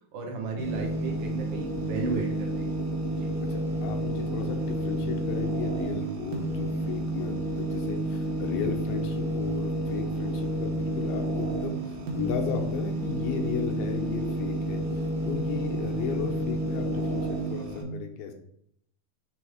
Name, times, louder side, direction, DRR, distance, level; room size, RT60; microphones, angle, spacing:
voice 1, 0.1-2.8 3.1-3.3, right 4 dB, 85° right, 0 dB, 1.3 m, -34 dB
sound 1, 0.6-17.8, right 1 dB, 65° right, 2.4 m, -30 dB
voice 2, 3.5-18.3, left 6 dB, 80° left, 3 dB, 2.4 m, -35 dB
6.2 x 3.4 x 4.8 m, 0.72 s
omnidirectional pair, 4.2 m